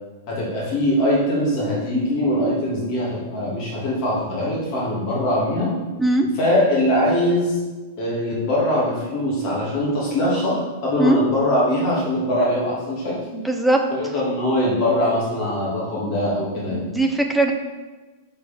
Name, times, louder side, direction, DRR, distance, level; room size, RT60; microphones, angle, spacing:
voice 1, 0.3-5.7 6.4-7.6 8.0-10.5 10.8-13.1 13.9-16.8, left 1 dB, 30° left, -5 dB, 2.6 m, -22 dB
voice 2, 13.3-13.8 16.7-17.5, right 2 dB, ahead, 2 dB, 0.6 m, -20 dB
6.7 x 5.1 x 5.3 m, 1.3 s
supercardioid pair, 175°, 0 cm